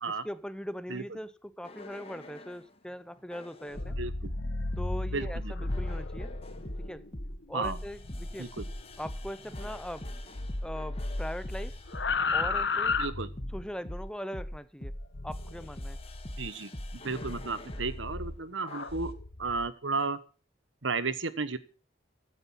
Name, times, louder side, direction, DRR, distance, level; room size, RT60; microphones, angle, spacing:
voice 1, 0.1-4.0 4.8-6.3 6.8-7.0 7.5-8.5 9.0-10.1 10.6-11.8 12.3-13.0 13.5-14.9 15.2-16.0, equal, 5° left, 0.6 m, -40 dB
Roomy Drums with Techno Kick, 1.6-2.6 3.3-18.0 18.7-19.0, equal, 30° left, 1.7 m, -41 dB
Bass Scream, 3.6-10.1 10.3-13.7 15.1-16.4 17.0-19.7, left 3 dB, 65° left, 1.2 m, -35 dB
voice 2, 4.0-4.3 5.1-5.5 7.5-7.8 8.4-8.6 13.0-13.3 16.4-19.1 19.4-20.2 20.8-21.6, right 4 dB, 85° right, 1.3 m, -33 dB
15.5 x 9.2 x 5.7 m
head